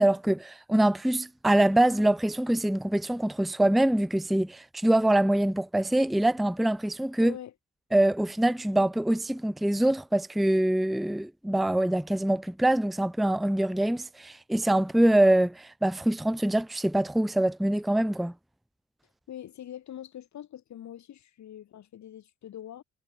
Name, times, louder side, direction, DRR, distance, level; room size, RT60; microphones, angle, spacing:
voice 1, 0.0-7.3 7.9-18.3, right 1 dB, ahead, 0.6 m, -24 dB
voice 2, 7.2-7.5 19.3-22.8, left 11 dB, 65° left, 3.4 m, -43 dB
cardioid pair, 90°, 30 cm